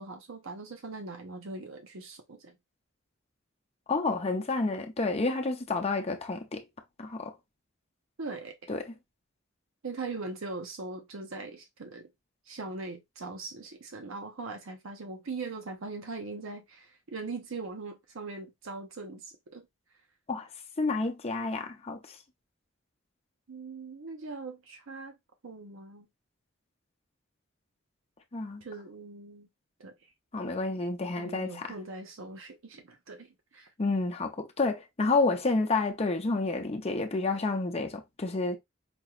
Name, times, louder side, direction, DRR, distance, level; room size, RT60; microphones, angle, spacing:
voice 1, 0.0-2.5 8.2-8.7 9.8-12.1 12.5-19.7 23.5-25.1 25.4-26.1 28.6-29.5 29.8-29.9 31.2-33.7, right 3 dB, 90° right, 0.8 m, -41 dB
voice 2, 3.9-6.6 7.0-7.3 8.7-8.9 20.3-20.5 20.8-22.2 28.3-28.6 30.3-31.7 33.8-38.6, left 3 dB, 30° left, 0.6 m, -29 dB
5.2 x 2.9 x 2.4 m
head